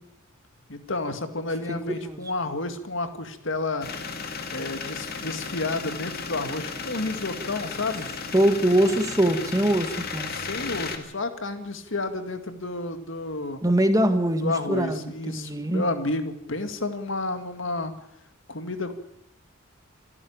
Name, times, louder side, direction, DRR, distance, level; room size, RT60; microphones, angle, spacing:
voice 1, 0.7-3.9 4.5-8.1 10.3-13.6 14.4-17.9 18.5-18.9, left 2 dB, 65° left, 8 dB, 2.1 m, -31 dB
sound 1, 3.8-11.0, left 5 dB, 50° left, 2.2 m, -34 dB
voice 2, 8.3-10.3 13.6-15.8, right 1 dB, 15° right, 7 dB, 1.8 m, -23 dB
27.0 x 11.0 x 8.7 m, 0.77 s
head